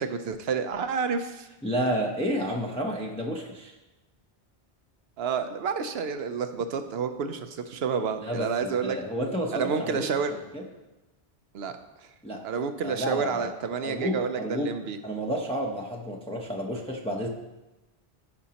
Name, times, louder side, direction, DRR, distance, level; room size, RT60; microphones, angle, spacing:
voice 1, 0.0-1.5 5.2-9.0 9.5-10.4 11.5-12.1 12.4-15.0, right 6 dB, 80° right, 8 dB, 0.9 m, -29 dB
voice 2, 1.6-3.8 8.2-10.1 10.5-10.6 12.2-12.4 12.8-13.5 13.8-14.7 15.0-17.3, equal, 5° left, -1 dB, 0.7 m, -30 dB
14.5 x 5.3 x 2.9 m, 1.1 s
omnidirectional pair, 1.0 m